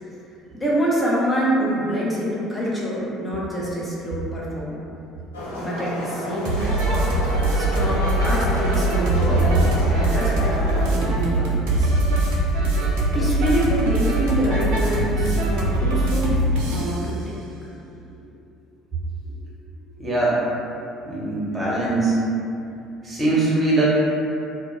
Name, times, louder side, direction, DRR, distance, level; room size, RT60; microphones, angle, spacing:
voice 1, 0.5-4.8 5.6-6.7 7.5-10.5 10.9-11.9 13.1-16.4 16.7-17.7 18.1-18.2 19.2-19.4 20.1-20.4, right 1 dB, 15° left, -6 dB, 0.7 m, -26 dB
sound 1, 5.3-10.9, left 1 dB, 80° left, 0.4 m, -30 dB
sound 2, 6.4-17.0, right 1 dB, 70° right, 0.4 m, -22 dB
voice 2, 20.0-20.4 21.1-22.2 23.0-23.8, right 2 dB, 25° right, -7 dB, 0.9 m, -21 dB
2.2 x 2.2 x 3.0 m, 2.6 s
figure-of-eight pair, 60°, 0 cm